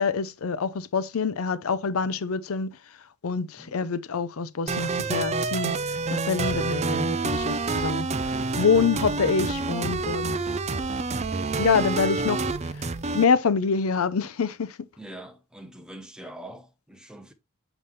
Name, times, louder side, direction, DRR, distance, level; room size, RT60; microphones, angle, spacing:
voice 1, 0.0-2.8 3.2-10.4 11.6-12.9 13.1-14.9, left 5 dB, 85° left, 0.6 m, -26 dB
sound 1, 4.7-13.2, right 3 dB, 30° right, 0.5 m, -28 dB
voice 2, 15.0-17.3, equal, 5° right, 0.9 m, -44 dB
7.0 x 5.6 x 3.1 m
head